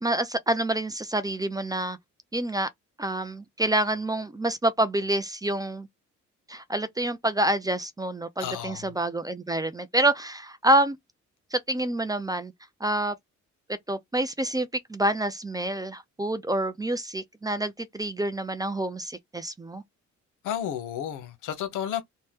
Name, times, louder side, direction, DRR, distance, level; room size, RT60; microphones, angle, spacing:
voice 1, 0.0-2.0 2.3-2.7 3.0-5.9 6.5-11.0 11.5-12.5 12.8-13.1 13.9-19.8, right 1 dB, 15° right, 0.3 m, -27 dB
voice 2, 8.4-8.8 20.4-22.0, left 10 dB, 85° left, 0.7 m, -32 dB
2.8 x 2.1 x 3.2 m
cardioid pair, 90°, 30 cm